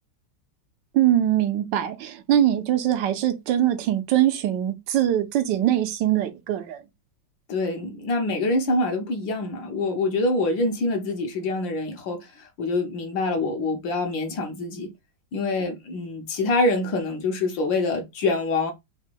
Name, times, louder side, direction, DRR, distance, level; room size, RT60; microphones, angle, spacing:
voice 1, 0.9-6.8, right 12 dB, 70° right, 1.2 m, -22 dB
voice 2, 7.5-14.9 15.3-18.7, left 2 dB, 70° left, 1.6 m, -25 dB
4.0 x 2.2 x 4.5 m
omnidirectional pair, 2.2 m